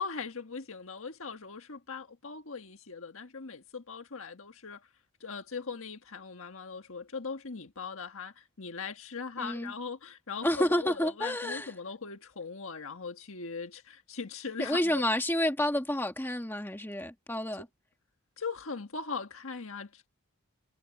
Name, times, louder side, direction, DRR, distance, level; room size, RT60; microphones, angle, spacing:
voice 1, 0.0-4.8 5.2-15.0 18.4-20.1, left 5 dB, 65° left, 1.6 m, -40 dB
voice 2, 9.4-9.7 10.4-11.7 14.6-17.7, left 1 dB, 10° left, 1.7 m, -29 dB
head